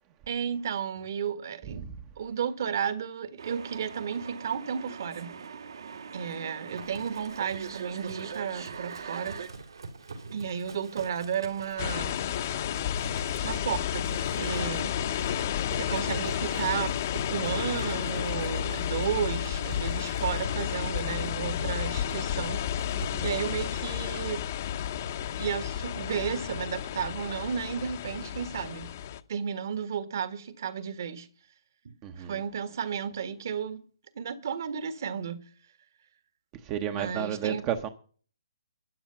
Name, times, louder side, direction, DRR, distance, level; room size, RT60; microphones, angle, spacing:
voice 1, 0.3-1.8 2.2-5.4 6.1-9.4 10.3-12.1 13.4-14.9 15.8-16.9 17.3-22.6 23.2-24.4 25.4-28.9 29.3-31.3 31.8-33.8 34.1-35.5 36.9-37.6, right 7 dB, 45° right, 1.5 m, -33 dB
sound 1, 3.4-9.5, right 6 dB, 65° right, 1.7 m, -41 dB
Livestock farm animals working animals, 6.7-24.3, right 4 dB, 80° right, 4.4 m, -46 dB
sound 2, 11.8-29.2, left 10 dB, 35° left, 0.8 m, -31 dB
voice 2, 22.9-23.3 32.0-32.4 36.6-37.9, right 9 dB, 20° right, 0.8 m, -32 dB
13.0 x 9.6 x 5.7 m
hypercardioid pair, 165°, 2 cm